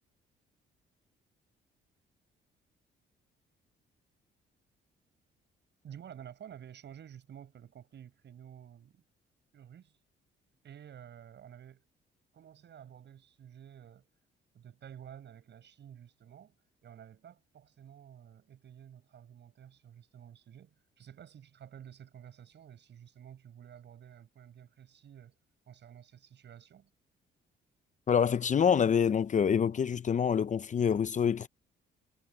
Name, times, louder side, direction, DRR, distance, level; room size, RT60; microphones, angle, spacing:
voice 1, 5.8-9.0 9.5-10.0 10.6-11.9 12.3-14.1 14.5-16.5 16.8-25.4 25.7-26.9, right 9 dB, 65° right, 6.8 m, -51 dB
voice 2, 28.1-31.5, left 7 dB, 40° left, 0.6 m, -26 dB
cardioid pair, 90°, 20 cm